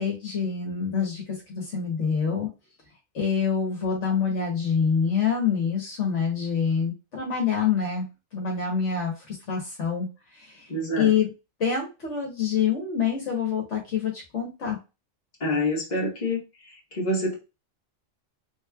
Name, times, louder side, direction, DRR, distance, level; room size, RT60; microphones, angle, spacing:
voice 1, 0.0-2.5 3.1-10.7 11.0-11.3 11.6-14.8, left 6 dB, 65° left, 1.3 m, -26 dB
voice 2, 10.7-11.1 15.4-17.3, left 1 dB, 35° left, 1.4 m, -27 dB
3.5 x 3.2 x 2.2 m
omnidirectional pair, 1.4 m